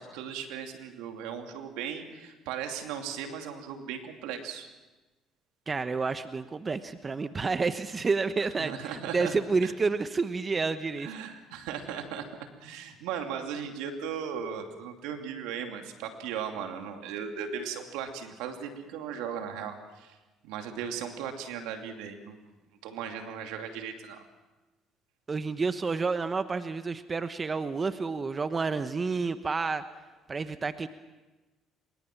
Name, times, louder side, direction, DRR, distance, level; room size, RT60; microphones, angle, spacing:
voice 1, 0.0-4.7 8.6-9.3 9.6-9.7 11.0-12.2 12.6-20.1 20.4-22.5 22.8-24.3, right 7 dB, 80° right, 5 dB, 2.7 m, -37 dB
voice 2, 5.7-11.1 25.3-29.8 30.3-30.9, right 4 dB, 35° right, 11 dB, 1.1 m, -29 dB
26.0 x 23.0 x 6.1 m, 1.1 s
supercardioid pair, 65°, 0 cm